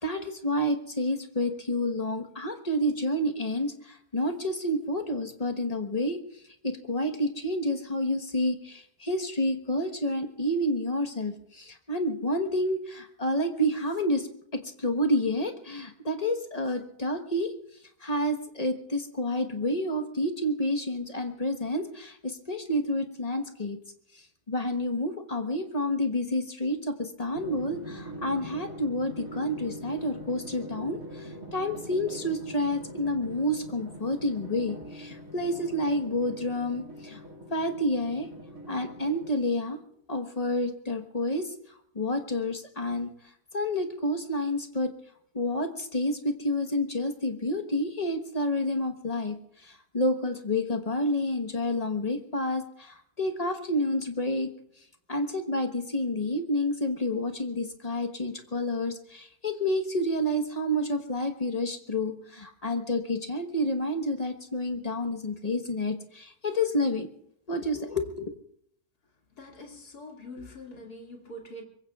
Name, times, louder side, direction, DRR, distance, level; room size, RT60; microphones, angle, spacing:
voice 1, 0.0-6.2 6.6-14.3 14.5-17.5 18.0-23.8 24.1-37.2 37.5-38.3 38.7-39.8 40.1-43.1 43.5-44.9 45.3-54.5 55.1-67.1 67.5-68.3, left 1 dB, 25° left, 6 dB, 1.2 m, -29 dB
Drum, 27.3-39.7, equal, 60° right, 2.7 m, -43 dB
voice 2, 69.4-71.6, left 1 dB, 75° left, 1 dB, 2.9 m, -44 dB
25.0 x 22.5 x 2.4 m, 0.69 s
omnidirectional pair, 1.7 m